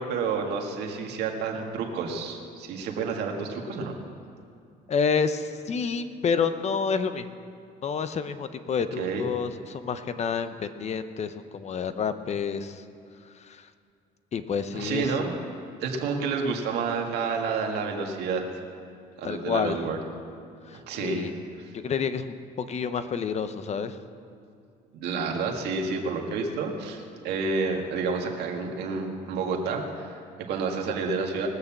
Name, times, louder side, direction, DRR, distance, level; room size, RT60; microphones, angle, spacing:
voice 1, 0.0-3.9 9.0-9.3 14.7-15.3 15.8-18.4 19.2-20.0 20.7-21.3 24.9-31.5, right 4 dB, 80° right, 1 dB, 1.9 m, -29 dB
voice 2, 4.9-7.3 7.8-12.8 13.4-13.7 14.3-15.1 19.2-19.8 20.7-21.3 21.7-24.0, left 6 dB, 40° left, 11 dB, 0.8 m, -29 dB
20.0 x 6.7 x 7.2 m, 2.4 s
cardioid pair, 110°, 17 cm